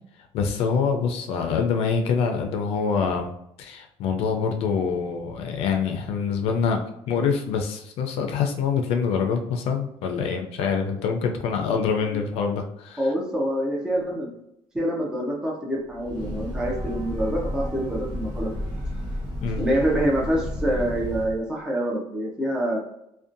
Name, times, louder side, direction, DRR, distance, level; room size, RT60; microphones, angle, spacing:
voice 1, 0.3-3.3 3.6-6.8 7.1-13.1 19.4-19.6, left 6 dB, 75° left, 4 dB, 0.4 m, -25 dB
voice 2, 13.0-14.4 14.7-18.5 19.6-22.8, right 1 dB, 5° right, -2 dB, 0.4 m, -26 dB
Breathing / Train, 15.9-21.5, left 1 dB, 50° right, 1.3 m, -32 dB
2.6 x 2.1 x 2.5 m, 0.77 s
cardioid pair, 180°, 10 cm